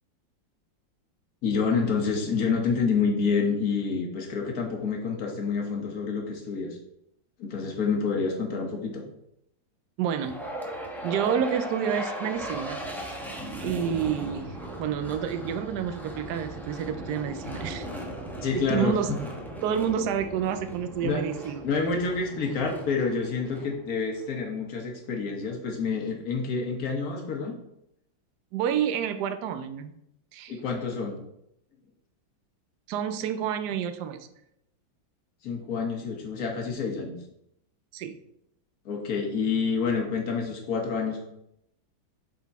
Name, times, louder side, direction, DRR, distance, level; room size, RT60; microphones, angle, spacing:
voice 1, 1.4-6.8 7.4-9.0 18.4-18.9 21.0-21.2 21.6-27.5 30.5-31.2 35.4-37.1 38.8-41.2, left 5 dB, 50° left, 1 dB, 1.6 m, -28 dB
voice 2, 10.0-10.4 11.0-12.8 13.6-17.9 18.5-19.1 19.6-21.6 28.5-29.9 30.3-30.5 32.9-34.3 37.9-38.2, right 8 dB, 70° right, 9 dB, 1.1 m, -29 dB
sound 1, 10.2-24.4, right 1 dB, ahead, 0.5 m, -38 dB
8.0 x 4.1 x 4.2 m, 0.79 s
omnidirectional pair, 2.1 m